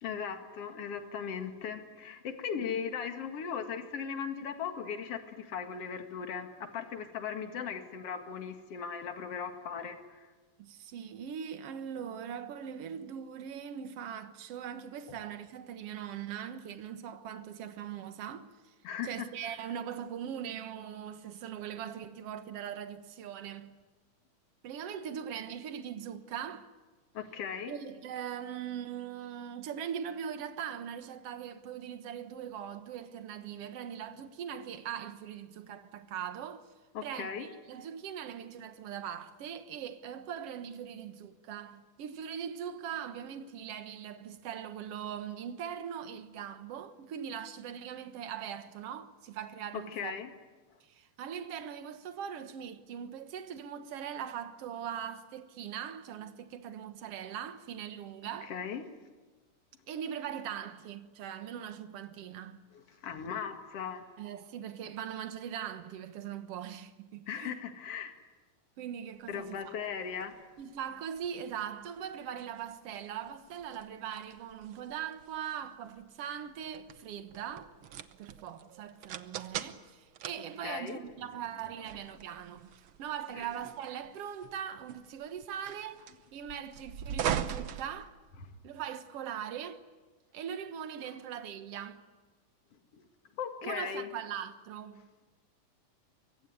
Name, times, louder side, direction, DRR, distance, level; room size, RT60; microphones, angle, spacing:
voice 1, 0.0-10.3 18.8-19.3 27.1-27.7 36.9-37.5 49.7-50.3 58.4-58.8 62.7-64.1 67.3-68.1 69.3-70.4 80.6-81.0 83.4-83.5 92.9-93.0 93.4-94.1, left 7 dB, 50° left, 2.7 m, -38 dB
voice 2, 10.6-18.8 19.0-23.8 24.6-26.7 27.7-36.7 37.0-50.1 50.8-58.5 59.9-62.6 64.2-67.6 68.8-69.8 70.6-77.7 78.2-82.7 83.0-86.0 86.3-88.2 88.6-89.8 90.3-92.0 93.6-95.1, right 9 dB, 55° right, 2.0 m, -41 dB
sound 1, 69.3-88.7, right 9 dB, 80° right, 1.1 m, -42 dB
24.0 x 23.5 x 9.5 m
omnidirectional pair, 3.7 m